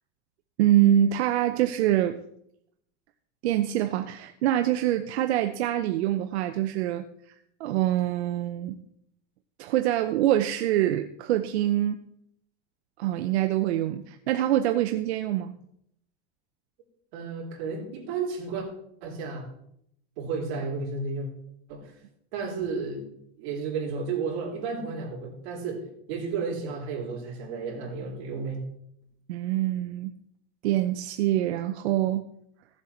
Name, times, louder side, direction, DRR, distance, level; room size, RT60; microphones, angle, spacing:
voice 1, 0.6-2.2 3.4-7.1 7.6-8.8 9.6-12.0 13.0-15.5 29.3-30.1 30.6-32.2, right 12 dB, 80° right, 8 dB, 0.8 m, -25 dB
voice 2, 17.1-18.7 19.0-19.4 20.2-21.3 21.7-21.9 22.3-23.1 23.4-28.6, right 4 dB, 50° right, -1 dB, 3.5 m, -32 dB
15.0 x 7.6 x 4.4 m, 0.72 s
supercardioid pair, 170°, 32 cm